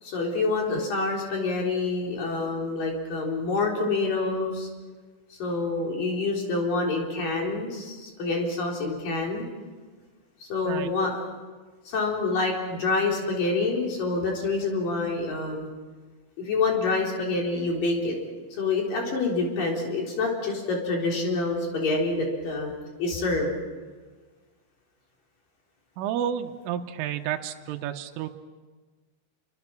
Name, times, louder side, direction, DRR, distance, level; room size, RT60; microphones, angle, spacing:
voice 1, 0.0-4.7 5.4-9.5 10.4-11.2 11.9-15.7 16.4-18.2 18.5-22.7 23.0-23.5, left 3 dB, 45° left, 0 dB, 5.1 m, -27 dB
voice 2, 26.0-28.3, right 10 dB, 80° right, 5 dB, 3.5 m, -31 dB
28.0 x 24.0 x 6.0 m, 1.4 s
omnidirectional pair, 5.8 m